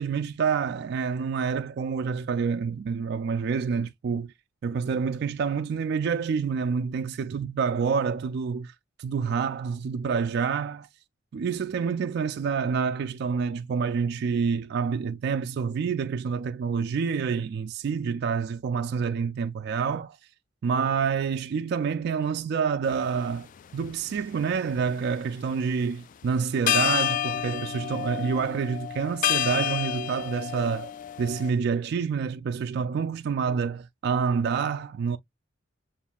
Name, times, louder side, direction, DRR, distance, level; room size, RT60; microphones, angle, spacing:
voice 1, 0.0-4.3 4.6-8.7 9.0-10.9 11.3-20.2 20.6-23.5 23.7-30.9 31.2-35.2, right 6 dB, 55° right, 0.3 m, -27 dB
sound 1, 22.9-23.1 23.8-24.8 26.2-26.3 26.7-31.5, left 11 dB, 40° left, 0.3 m, -29 dB
7.2 x 2.5 x 2.2 m
head